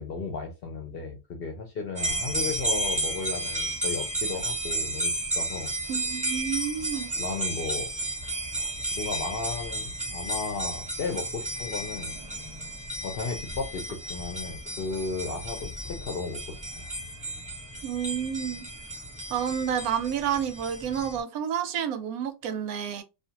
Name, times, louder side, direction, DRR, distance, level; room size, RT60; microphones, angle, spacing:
voice 1, 0.0-5.7 7.1-7.9 8.6-12.2 13.0-16.9, left 4 dB, 60° left, 0.6 m, -35 dB
sound 1, 2.0-21.2, right 2 dB, 5° right, 0.9 m, -33 dB
voice 2, 5.9-7.1 17.8-18.6 19.3-23.0, right 8 dB, 85° right, 1.0 m, -30 dB
2.5 x 2.3 x 2.7 m
omnidirectional pair, 1.5 m